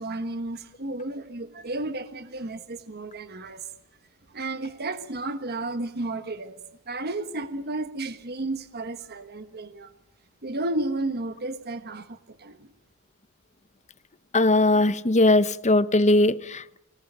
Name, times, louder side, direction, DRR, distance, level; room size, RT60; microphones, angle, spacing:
voice 1, 0.0-3.7 4.3-6.6 6.9-9.9 10.4-12.7, right 2 dB, 45° right, 1.3 m, -32 dB
voice 2, 14.3-16.8, left 2 dB, 35° left, 0.9 m, -20 dB
25.5 x 19.0 x 9.1 m
head